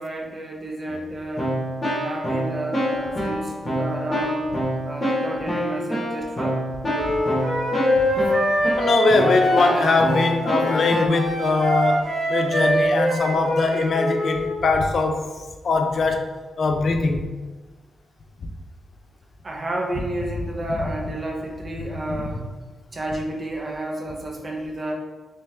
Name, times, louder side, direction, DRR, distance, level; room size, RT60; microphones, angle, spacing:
voice 1, 0.0-1.5 1.9-4.5 4.8-6.6 19.4-22.4 22.9-24.9, right 1 dB, 35° right, 0 dB, 0.7 m, -31 dB
Keyboard (musical), 0.9-1.0 1.4-11.1, equal, 30° left, 1.3 m, -27 dB
Wind instrument woodwind instrument, 6.9-14.5, equal, 70° right, 1.4 m, -24 dB
voice 2, 8.8-15.3 15.6-16.3 16.6-17.3 22.1-22.4, left 3 dB, 55° left, 5 dB, 0.4 m, -21 dB
3.3 x 3.3 x 3.3 m, 1.3 s
cardioid pair, 105°, 0 cm